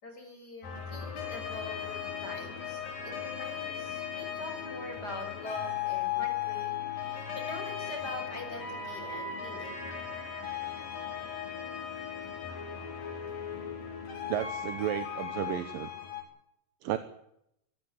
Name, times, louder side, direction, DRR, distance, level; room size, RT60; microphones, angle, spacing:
voice 1, 0.0-9.9, left 1 dB, 25° left, 3 dB, 7.1 m, -43 dB
sound 1, 0.6-16.2, left 8 dB, 75° left, 6.0 m, -37 dB
voice 2, 14.3-15.9 16.8-17.0, right 12 dB, 80° right, 11 dB, 2.8 m, -33 dB
25.0 x 14.5 x 9.1 m, 0.78 s
omnidirectional pair, 4.0 m